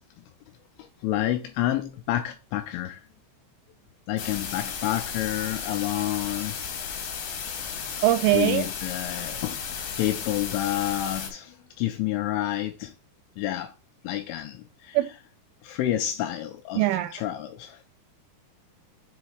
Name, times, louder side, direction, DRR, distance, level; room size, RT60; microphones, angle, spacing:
voice 1, 0.8-3.1 4.1-6.6 8.3-9.6 10.0-12.9 13.4-13.7 14.0-15.0 15.6-17.8, left 13 dB, 85° left, 2.8 m, -29 dB
sound 1, 4.2-11.3, left 7 dB, 70° left, 2.1 m, -34 dB
voice 2, 8.0-8.7 14.9-15.1 16.7-17.1, right 16 dB, 80° right, 3.1 m, -21 dB
7.1 x 3.4 x 4.7 m
omnidirectional pair, 5.9 m